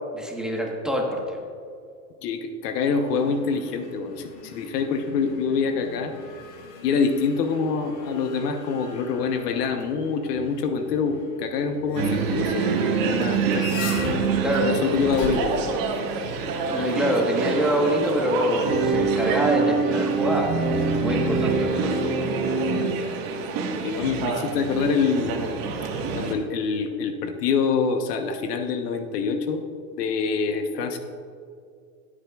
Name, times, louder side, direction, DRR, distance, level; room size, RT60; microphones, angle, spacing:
voice 1, 0.1-1.4 14.4-14.7 16.7-22.3, equal, ahead, -1 dB, 1.3 m, -25 dB
voice 2, 2.2-6.1 6.8-13.8 14.6-15.6 23.8-25.5 26.1-29.6 30.0-31.0, left 5 dB, 80° left, 6 dB, 1.1 m, -25 dB
sound 1, 2.9-15.7, left 4 dB, 40° left, 1.5 m, -40 dB
sound 2, 12.0-26.3, right 4 dB, 45° right, 1.6 m, -25 dB
15.0 x 8.8 x 2.4 m, 2.3 s
supercardioid pair, 125°, 47 cm